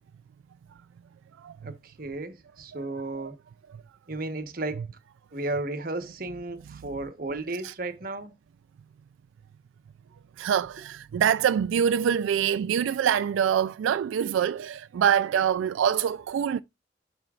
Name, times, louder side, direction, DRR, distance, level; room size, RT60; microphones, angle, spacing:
voice 1, 1.6-3.4 4.1-4.9 5.3-8.3, right 2 dB, 50° right, 1.0 m, -34 dB
voice 2, 10.4-16.6, right 8 dB, 90° right, 0.3 m, -25 dB
12.0 x 4.4 x 2.4 m
head